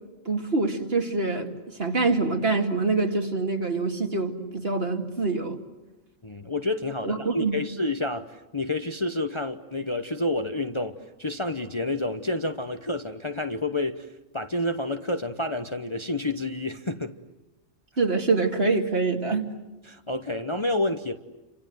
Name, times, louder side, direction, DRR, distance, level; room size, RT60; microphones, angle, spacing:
voice 1, 0.3-1.5 1.8-5.6 7.0-7.6 18.0-19.5, right 3 dB, 50° right, 2.6 m, -25 dB
voice 2, 6.2-14.1 14.3-17.2 19.8-21.2, left 2 dB, 25° left, 0.9 m, -29 dB
29.5 x 26.0 x 7.8 m
omnidirectional pair, 1.3 m